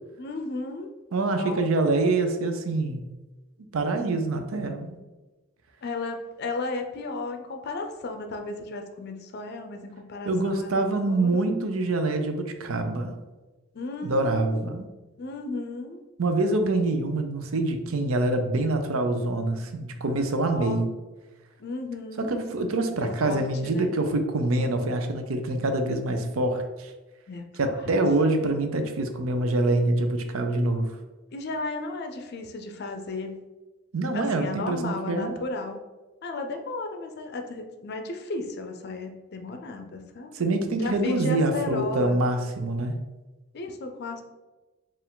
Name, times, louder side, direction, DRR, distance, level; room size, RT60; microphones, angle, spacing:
voice 1, 0.2-0.9 1.3-1.6 5.8-10.7 11.1-11.4 13.7-14.6 15.2-16.0 20.5-20.8 21.6-22.3 23.0-23.9 27.3-27.7 31.3-33.4 34.1-35.8 36.2-40.3 40.8-42.2 43.5-44.2, left 3 dB, 50° left, 5 dB, 0.5 m, -34 dB
voice 2, 1.1-3.0 3.7-5.0 10.3-13.2 14.0-14.9 16.2-20.9 22.2-26.9 27.6-30.9 33.9-35.4 40.3-42.9, right 2 dB, 85° right, 6 dB, 0.5 m, -25 dB
4.5 x 2.5 x 3.6 m, 1.2 s
head